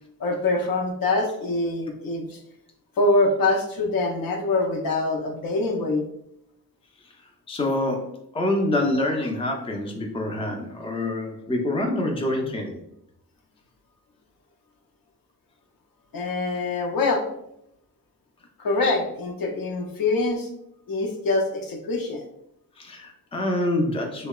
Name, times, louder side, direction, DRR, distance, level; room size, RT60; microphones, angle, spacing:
voice 1, 0.2-2.4 3.0-6.0 16.1-17.2 18.6-20.5 20.9-22.3, left 2 dB, 60° left, 1 dB, 0.6 m, -24 dB
voice 2, 7.5-12.8 22.8-24.3, left 1 dB, 15° left, 1 dB, 0.5 m, -26 dB
2.7 x 2.0 x 2.3 m, 0.77 s
supercardioid pair, 45°, 39 cm